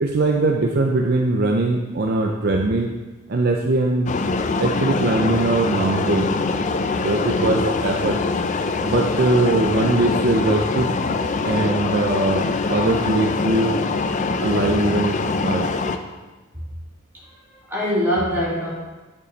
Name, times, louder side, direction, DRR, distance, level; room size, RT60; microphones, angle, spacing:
voice 1, 0.0-2.9 3.3-4.1 4.6-6.3 6.9-8.2 8.8-10.9 11.4-13.8 14.4-15.7, right 2 dB, 45° right, 1 dB, 0.5 m, -21 dB
sound 1, 4.1-16.0, left 4 dB, 35° left, 0.4 m, -23 dB
voice 2, 17.1-18.7, equal, 10° right, -7 dB, 2.1 m, -24 dB
10.5 x 5.3 x 3.3 m, 1.2 s
head